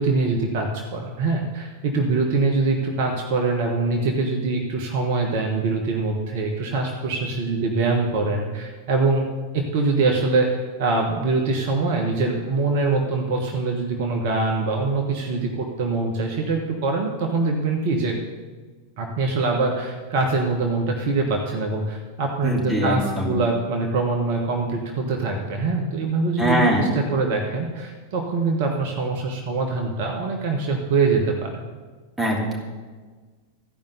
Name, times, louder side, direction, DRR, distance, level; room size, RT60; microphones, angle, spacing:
voice 1, 0.0-9.2 9.5-18.2 19.0-31.6, right 3 dB, 50° right, 2 dB, 1.3 m, -23 dB
voice 2, 22.4-23.3 26.4-26.8 32.2-32.6, equal, 5° right, -2 dB, 2.8 m, -22 dB
14.0 x 5.3 x 6.9 m, 1.4 s
figure-of-eight pair, 90°, 0 cm